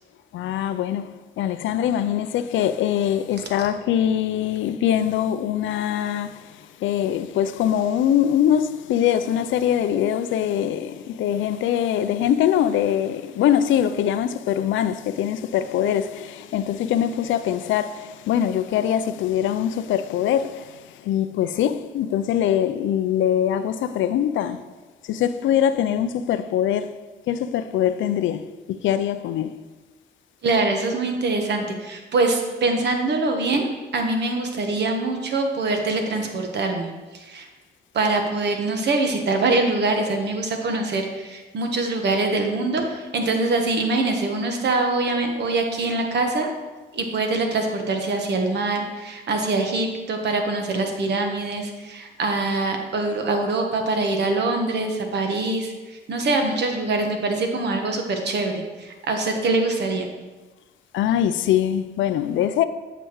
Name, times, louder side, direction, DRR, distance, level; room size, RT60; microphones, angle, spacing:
voice 1, 0.3-24.6 25.0-26.9 27.3-29.5 60.9-62.6, left 10 dB, 75° left, 0.4 m, -23 dB
voice 2, 30.4-33.7 33.9-37.5 37.9-46.5 46.9-60.1, right 3 dB, 60° right, 1.2 m, -24 dB
8.1 x 5.9 x 3.0 m
cardioid pair, 90°, 20 cm